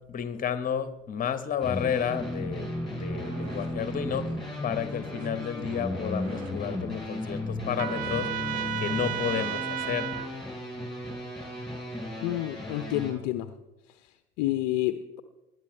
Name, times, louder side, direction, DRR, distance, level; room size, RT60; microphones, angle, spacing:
voice 1, 0.1-4.3 4.6-8.3 8.8-10.1, left 8 dB, 20° left, 12 dB, 1.1 m, -31 dB
sound 1, 1.6-13.1, left 1 dB, ahead, 4.9 m, -35 dB
sound 2, 3.1-8.7, right 3 dB, 85° right, 1.5 m, -46 dB
Trumpet, 7.8-10.3, right 12 dB, 55° right, 0.7 m, -33 dB
voice 2, 12.2-13.5 14.4-15.2, left 14 dB, 45° left, 11 dB, 0.6 m, -29 dB
20.0 x 11.0 x 3.3 m, 1.0 s
figure-of-eight pair, 75°, 38 cm